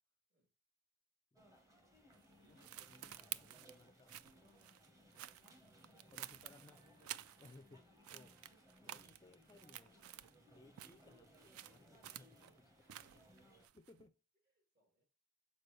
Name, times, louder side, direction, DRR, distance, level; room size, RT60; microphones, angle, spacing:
sound 1, 1.4-13.7, equal, 15° right, 1.0 m, -65 dB
sound 2, 2.1-7.8 8.0-10.4 10.7-14.1, right 12 dB, 75° right, 0.4 m, -52 dB
voice 1, 2.5-4.5 5.1-5.3 5.8-7.1 7.4-10.0 10.5-13.0 13.7-14.2, left 2 dB, 20° left, 0.4 m, -64 dB
voice 2, 12.6-13.7 14.4-15.0, right 1 dB, 50° right, 2.9 m, -82 dB
6.7 x 4.5 x 3.1 m
head